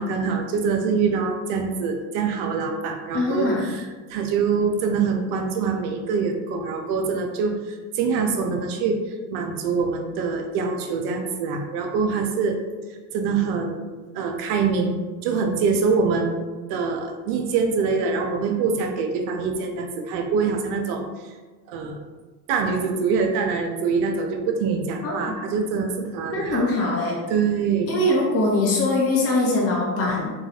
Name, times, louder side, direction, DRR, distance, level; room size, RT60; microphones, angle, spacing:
voice 1, 0.0-9.0 9.3-12.6 13.1-13.8 14.1-14.9 15.2-16.4 16.7-21.0 21.7-22.0 22.5-26.7 27.3-27.9, right 5 dB, 65° right, 4 dB, 0.6 m, -24 dB
voice 2, 3.1-3.6 25.0-25.4 26.3-27.2 27.9-30.3, left 2 dB, 30° left, -3 dB, 0.7 m, -22 dB
3.0 x 2.3 x 2.7 m, 1.3 s
supercardioid pair, 90°, 48 cm